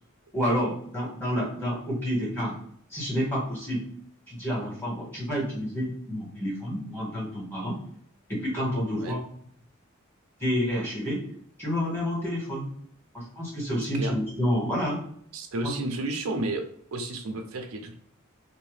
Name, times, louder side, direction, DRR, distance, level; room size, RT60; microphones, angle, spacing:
voice 1, 0.3-2.5 2.9-3.8 4.3-7.8 8.3-9.2 10.4-11.2 11.6-12.7 13.1-15.0 15.6-15.7, equal, 10° left, -6 dB, 1.4 m, -29 dB
voice 2, 15.3-16.6 16.9-17.9, right 2 dB, 85° right, 5 dB, 0.5 m, -31 dB
2.7 x 2.1 x 3.2 m, 0.66 s
head